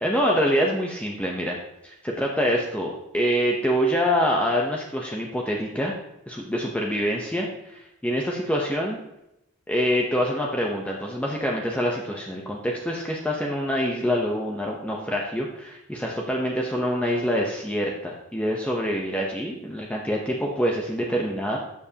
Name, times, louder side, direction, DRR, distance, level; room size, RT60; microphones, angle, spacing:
voice 1, 0.0-1.6 1.8-5.9 6.3-9.0 9.7-21.6, equal, 5° left, -1 dB, 0.8 m, -25 dB
12.0 x 7.2 x 2.9 m, 0.88 s
head